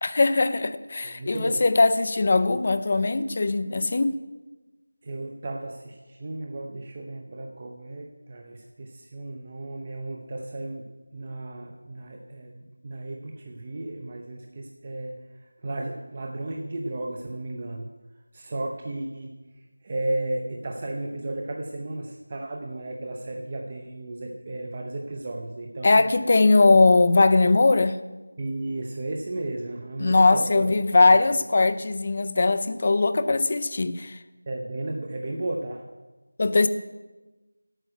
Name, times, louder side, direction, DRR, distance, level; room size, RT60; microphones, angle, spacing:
voice 1, 0.0-4.2 25.8-28.0 30.0-34.2 36.4-36.7, left 3 dB, 30° left, 12 dB, 0.5 m, -20 dB
voice 2, 1.0-1.6 5.0-10.8 11.1-17.9 18.3-19.3 19.8-26.0 28.4-30.7 31.0-31.1 34.5-35.8, right 2 dB, 25° right, 1 dB, 0.7 m, -34 dB
11.5 x 9.0 x 6.4 m, 1.2 s
figure-of-eight pair, 175°, 0 cm